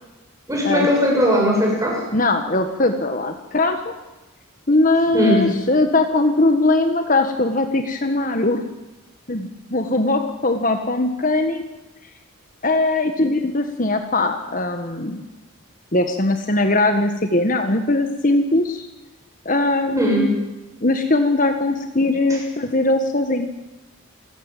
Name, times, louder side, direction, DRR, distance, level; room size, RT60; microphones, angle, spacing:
voice 1, 0.5-2.0 5.1-5.5 20.0-20.3, equal, 15° right, -1 dB, 6.7 m, -18 dB
voice 2, 2.1-3.9 4.7-8.6 9.3-11.6 12.6-15.2 15.9-18.9 19.4-20.3 20.8-23.5, left 2 dB, 40° left, 7 dB, 1.4 m, -20 dB
27.5 x 14.5 x 9.1 m, 1.1 s
head